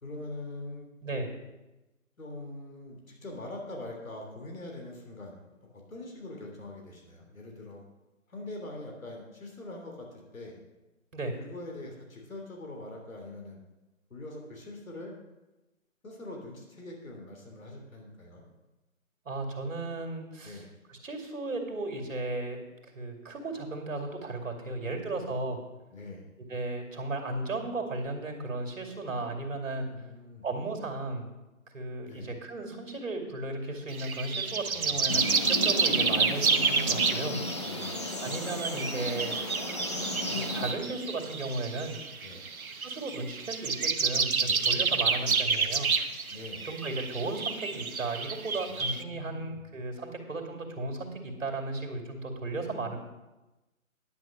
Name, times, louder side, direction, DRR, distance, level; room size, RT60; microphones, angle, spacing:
voice 1, 0.0-0.9 2.2-7.8 8.3-10.6 11.4-13.6 14.1-15.1 16.0-18.4 20.4-20.7 24.6-25.3 25.9-26.3 29.8-30.5 32.0-32.3 34.7-35.3 37.6-38.0 42.2-42.5 44.4-45.1 46.3-46.7 48.7-49.6, left 2 dB, 70° left, 0 dB, 3.1 m, -43 dB
voice 2, 19.3-20.6 20.9-22.6 22.9-25.6 26.5-29.9 30.4-31.3 31.7-37.4 38.2-39.3 40.3-42.0 42.8-45.9 46.6-53.0, right 2 dB, 65° right, 3 dB, 2.6 m, -35 dB
sound 1, 33.9-49.0, right 5 dB, 80° right, 1.1 m, -29 dB
sound 2, 35.1-40.7, left 2 dB, 20° left, 0.7 m, -35 dB
10.5 x 6.3 x 7.2 m, 1.0 s
figure-of-eight pair, 160°, 42 cm